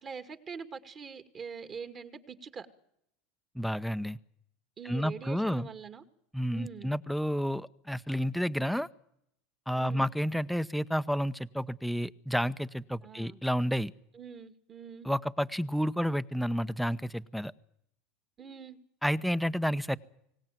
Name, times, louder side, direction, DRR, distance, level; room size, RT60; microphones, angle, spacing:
voice 1, 0.0-2.7 4.8-6.0 6.5-6.9 9.8-10.1 13.0-13.4 14.1-15.1 18.4-18.8, right 6 dB, 35° right, 9 dB, 2.4 m, -44 dB
voice 2, 3.5-4.2 4.8-5.7 6.3-8.9 9.7-13.9 15.0-17.5 19.0-20.0, equal, ahead, 13 dB, 0.9 m, -30 dB
24.5 x 18.0 x 9.3 m, 0.76 s
hypercardioid pair, 90°, 0 cm